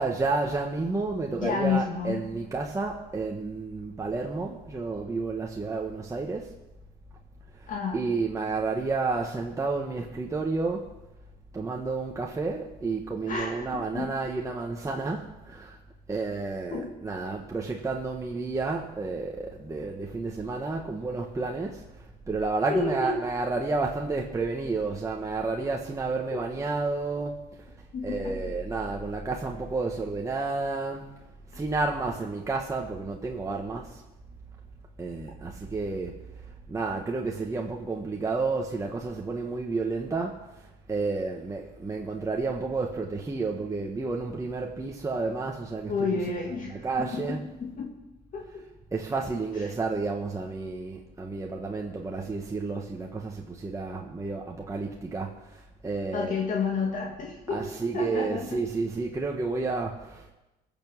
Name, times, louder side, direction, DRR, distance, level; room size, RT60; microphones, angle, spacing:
voice 1, 0.0-6.5 7.5-10.9 11.5-15.8 16.1-27.8 28.0-31.1 31.5-34.0 35.0-46.2 46.4-47.4 48.9-56.4 57.5-60.3, right 3 dB, 20° right, 0 dB, 1.4 m, -31 dB
voice 2, 1.4-2.3 7.7-8.0 13.3-14.1 16.7-16.9 22.7-23.2 26.3-26.4 27.9-28.5 45.9-47.9 48.3-48.6 49.6-49.7 56.1-57.7 57.9-58.6, left 5 dB, 50° left, -1 dB, 2.6 m, -31 dB
19.5 x 7.3 x 6.4 m, 0.97 s
cardioid pair, 110°, 17 cm